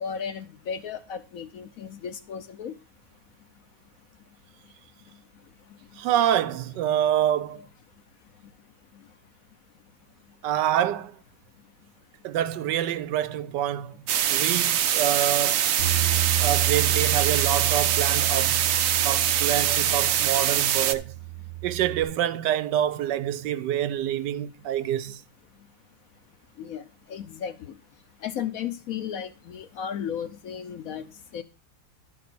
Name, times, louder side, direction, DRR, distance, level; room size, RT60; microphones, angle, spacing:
voice 1, 0.0-2.7 26.6-26.8 27.1-27.5 28.2-31.0 31.3-31.4, left 8 dB, 65° left, 1.0 m, -34 dB
voice 2, 6.0-7.6 10.4-11.2 12.2-14.0 14.2-15.7 16.4-18.6 19.0-21.1 21.6-25.2, right 11 dB, 85° right, 1.3 m, -26 dB
sound 1, 14.1-21.0, right 10 dB, 65° right, 0.8 m, -23 dB
Bass guitar, 15.8-22.0, right 18 dB, 90° left, 2.1 m, -31 dB
11.5 x 4.3 x 5.9 m
omnidirectional pair, 1.8 m